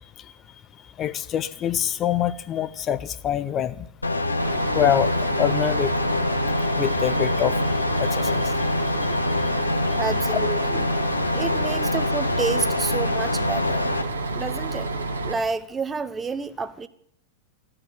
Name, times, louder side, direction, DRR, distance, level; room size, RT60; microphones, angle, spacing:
voice 1, 1.0-3.8 4.7-5.1 5.4-5.9 6.8-7.6 8.0-8.5 9.0-9.1 9.4-9.5 10.3-10.4, left 10 dB, 30° left, 0.7 m, -25 dB
sound 1, 4.0-14.0, left 2 dB, 80° left, 1.1 m, -25 dB
Bus, 4.4-15.3, right 2 dB, 80° right, 1.7 m, -29 dB
voice 2, 9.9-13.8 14.3-14.9 15.3-16.9, right 5 dB, 15° right, 0.8 m, -30 dB
15.0 x 11.0 x 8.0 m
figure-of-eight pair, 90°, 0 cm